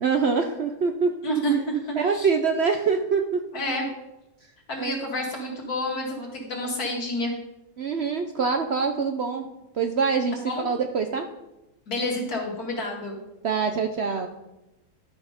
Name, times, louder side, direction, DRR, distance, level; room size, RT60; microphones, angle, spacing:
voice 1, 0.0-1.1 2.0-3.4 4.8-5.0 7.8-9.5 9.7-11.3 13.4-14.3, right 5 dB, 60° right, 6 dB, 0.7 m, -24 dB
voice 2, 1.2-2.3 3.5-3.9 4.7-7.4 10.5-10.7 11.9-13.2, equal, 70° left, 0 dB, 2.6 m, -29 dB
12.0 x 6.1 x 5.1 m, 0.95 s
omnidirectional pair, 1.7 m